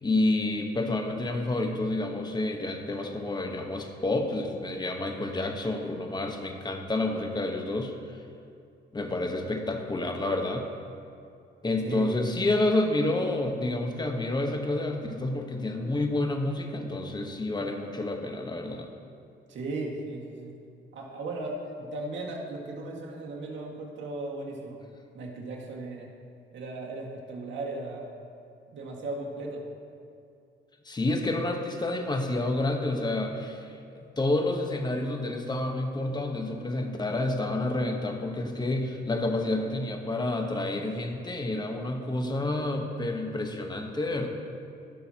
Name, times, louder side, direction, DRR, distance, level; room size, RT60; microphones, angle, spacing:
voice 1, 0.0-7.9 8.9-10.6 11.6-18.9 30.8-44.3, left 2 dB, 20° left, 3 dB, 1.2 m, -29 dB
voice 2, 19.5-20.5 20.9-24.8 25.1-26.1 26.5-28.1 28.7-29.6, right 2 dB, 70° right, -2 dB, 1.9 m, -36 dB
19.0 x 6.3 x 2.9 m, 2.4 s
cardioid pair, 90°, 20 cm